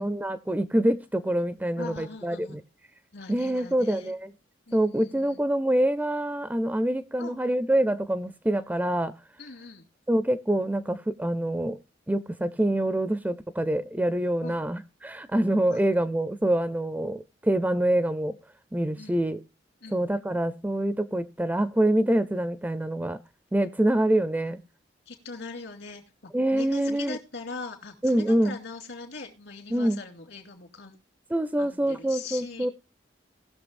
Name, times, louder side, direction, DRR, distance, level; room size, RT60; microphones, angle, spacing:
voice 1, 0.0-2.6 3.3-4.3 4.7-9.1 10.1-11.8 12.1-18.4 18.7-19.4 19.9-23.2 23.5-24.6 26.3-27.2 28.0-28.6 29.7-30.0 31.3-32.7, right 1 dB, 10° right, 0.4 m, -25 dB
voice 2, 1.8-2.6 3.1-4.1 4.7-5.4 7.2-7.3 9.4-9.8 14.4-14.6 15.7-15.8 19.0-19.1 19.8-20.0 24.5-24.6 25.1-31.0 31.6-32.7, left 3 dB, 75° left, 2.6 m, -41 dB
19.5 x 6.5 x 2.5 m
head